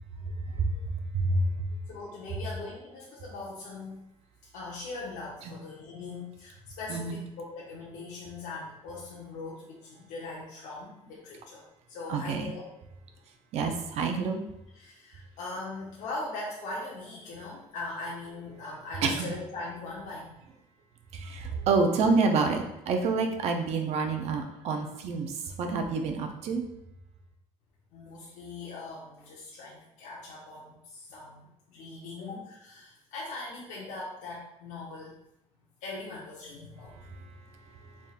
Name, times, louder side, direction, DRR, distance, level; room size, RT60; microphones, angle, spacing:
voice 1, 0.5-1.7 5.4-5.5 6.9-7.2 12.1-12.5 13.5-14.4 19.0-19.3 21.1-26.6 37.2-37.3 37.8-37.9, right 4 dB, 60° right, 4 dB, 0.6 m, -28 dB
voice 2, 1.9-4.0 4.5-11.6 11.9-12.6 14.7-20.4 27.9-35.1 35.8-37.1, left 3 dB, 90° left, -5 dB, 0.9 m, -40 dB
4.2 x 3.5 x 2.4 m, 0.86 s
cardioid pair, 150°, 12 cm